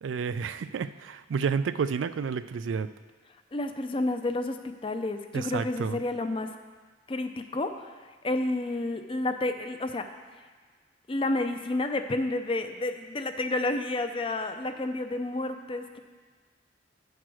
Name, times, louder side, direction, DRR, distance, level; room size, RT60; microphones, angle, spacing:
voice 1, 0.0-2.9 5.3-6.0, right 6 dB, 90° right, 12 dB, 0.4 m, -30 dB
voice 2, 3.5-6.5 7.1-7.9 8.2-10.1 11.1-16.0, left 2 dB, 30° left, 7 dB, 0.5 m, -30 dB
10.0 x 4.7 x 6.1 m, 1.5 s
head